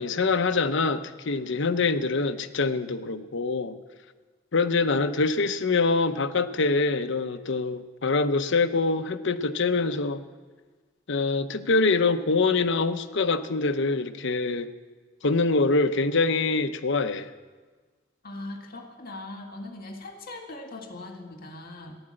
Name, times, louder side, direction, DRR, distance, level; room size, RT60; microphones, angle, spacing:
voice 1, 0.0-3.7 4.5-10.2 11.1-14.7 15.2-17.3, left 3 dB, 65° left, 9 dB, 0.8 m, -24 dB
voice 2, 18.2-22.0, left 2 dB, 50° left, 3 dB, 1.9 m, -40 dB
15.0 x 11.0 x 7.7 m, 1.4 s
head